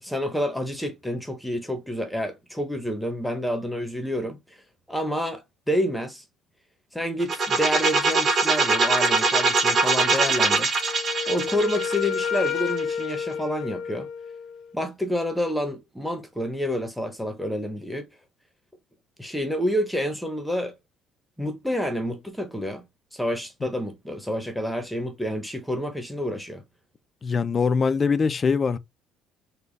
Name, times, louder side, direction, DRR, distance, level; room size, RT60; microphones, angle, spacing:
voice 1, 0.0-4.6 4.9-6.2 6.9-10.7 11.3-14.1 14.7-18.1 19.2-20.7 21.4-22.9 23.1-26.6, equal, ahead, 0.8 m, -28 dB
sound 1, 7.2-13.0, right 4 dB, 40° right, 1.2 m, -22 dB
Wind instrument woodwind instrument, 10.8-14.7, left 7 dB, 60° left, 0.7 m, -30 dB
voice 2, 27.2-28.8, left 5 dB, 30° left, 0.4 m, -22 dB
3.9 x 2.2 x 3.3 m
cardioid pair, 120°, 0 cm